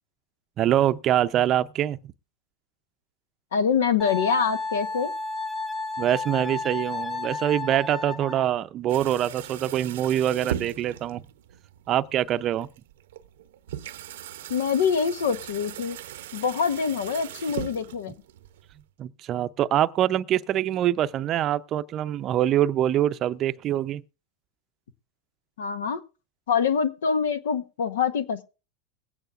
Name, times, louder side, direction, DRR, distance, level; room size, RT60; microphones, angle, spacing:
voice 1, 0.6-2.0 6.0-11.2 11.9-12.7 19.0-24.0, right 11 dB, 40° right, 0.5 m, -24 dB
voice 2, 3.5-5.1 14.5-16.0 16.3-18.1 25.6-26.0 26.5-28.4, left 6 dB, 90° left, 0.9 m, -25 dB
Wind instrument woodwind instrument, 4.0-8.5, left 3 dB, 15° left, 1.7 m, -32 dB
sound 1, 8.9-18.9, right 11 dB, 80° right, 0.6 m, -39 dB
21.5 x 9.1 x 2.4 m
supercardioid pair, 115°, 0 cm